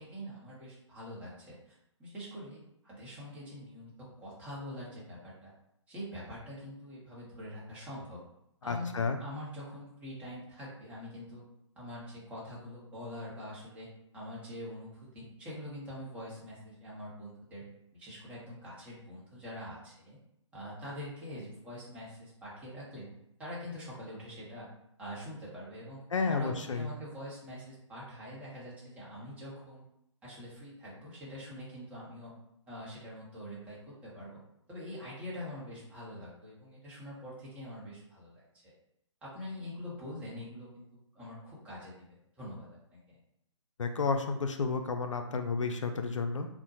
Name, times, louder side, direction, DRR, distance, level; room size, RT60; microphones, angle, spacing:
voice 1, 0.0-5.5 5.9-8.2 8.6-11.4 11.8-13.9 14.1-17.6 17.9-20.2 20.5-23.1 23.4-24.7 25.0-29.8 30.2-32.3 32.7-34.4 34.7-38.7 39.2-40.8 41.1-43.0, equal, 10° right, -7 dB, 0.8 m, -44 dB
voice 2, 8.7-9.2 26.1-26.9 43.8-46.5, left 4 dB, 70° left, 6 dB, 0.4 m, -31 dB
3.6 x 2.1 x 2.8 m, 0.77 s
figure-of-eight pair, 135°, 16 cm